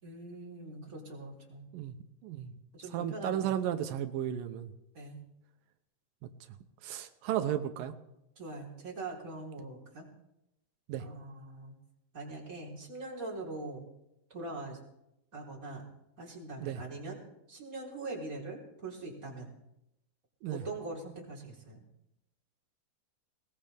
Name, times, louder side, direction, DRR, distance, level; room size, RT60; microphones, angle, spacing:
voice 1, 0.0-1.7 2.7-3.6 4.9-5.2 8.4-10.1 11.0-11.7 12.1-13.8 14.3-14.8 15.3-15.9 16.2-17.2 17.5-19.5 20.5-21.8, right 2 dB, 25° right, -3 dB, 4.1 m, -42 dB
voice 2, 2.9-4.7 6.8-7.9 10.9-11.0 16.6-16.8 20.4-20.6, right 10 dB, 90° right, 7 dB, 2.6 m, -34 dB
20.5 x 19.5 x 3.5 m, 0.85 s
omnidirectional pair, 3.9 m